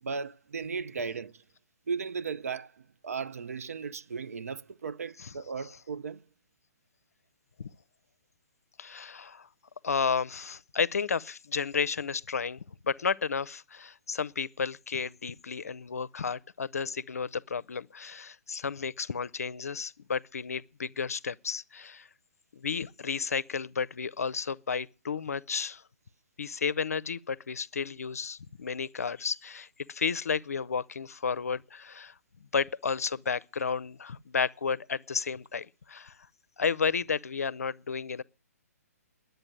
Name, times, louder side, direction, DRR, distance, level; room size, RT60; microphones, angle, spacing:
voice 1, 0.0-1.4 1.9-6.2, right 5 dB, 65° right, 0.5 m, -36 dB
voice 2, 8.8-9.5 9.8-22.1 22.6-25.8 26.4-32.1 32.5-36.2 36.6-38.2, left 5 dB, 65° left, 0.5 m, -32 dB
11.0 x 7.9 x 9.2 m
figure-of-eight pair, 130°, 9 cm